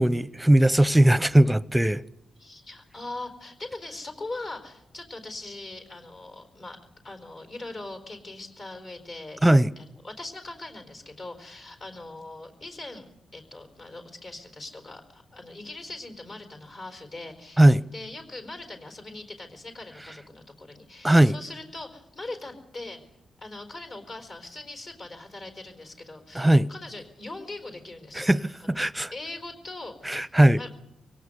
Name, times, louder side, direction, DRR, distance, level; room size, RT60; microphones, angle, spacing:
voice 1, 0.0-2.0 9.4-9.7 17.6-17.8 21.0-21.4 26.3-26.7 28.1-28.4 28.7-29.1 30.0-30.6, right 1 dB, 5° right, 0.7 m, -19 dB
voice 2, 2.4-6.8 7.0-9.4 9.8-23.0 23.4-28.3 29.1-30.8, left 2 dB, 55° left, 4.4 m, -41 dB
24.0 x 18.0 x 6.9 m
cardioid pair, 65°, 0 cm